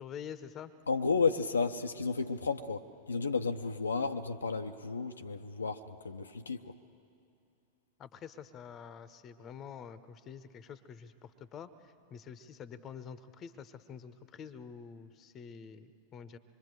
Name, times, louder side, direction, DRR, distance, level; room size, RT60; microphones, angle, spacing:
voice 1, 0.0-0.7 8.0-16.4, left 7 dB, 30° left, 14 dB, 1.0 m, -47 dB
voice 2, 0.9-6.7, left 4 dB, 75° left, 6 dB, 0.7 m, -32 dB
25.5 x 22.5 x 8.0 m, 2.6 s
figure-of-eight pair, 90°, 0 cm